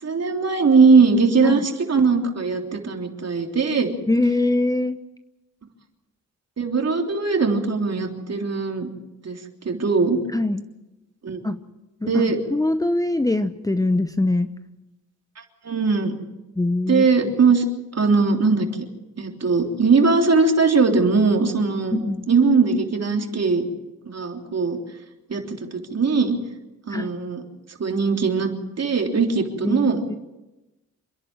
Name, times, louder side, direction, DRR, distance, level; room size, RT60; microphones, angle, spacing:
voice 1, 0.0-1.6 1.9-3.9 6.6-8.9 9.2-9.4 9.7-10.2 11.2-11.4 12.1-12.4 15.6-16.1 16.9-17.7 17.9-18.7 19.2-22.0 22.3-23.6 24.1-24.8 25.3-26.4 26.9-27.4 27.8-28.5 28.8-30.0, right 4 dB, 45° right, 3 dB, 3.5 m, -20 dB
voice 2, 4.1-5.0 10.3-10.6 11.4-11.6 12.0-14.5 16.6-17.3 21.9-22.2 26.9-27.1 29.6-30.2, left 2 dB, 10° left, 10 dB, 0.9 m, -23 dB
27.5 x 11.0 x 8.9 m, 1.0 s
cardioid pair, 70°, 36 cm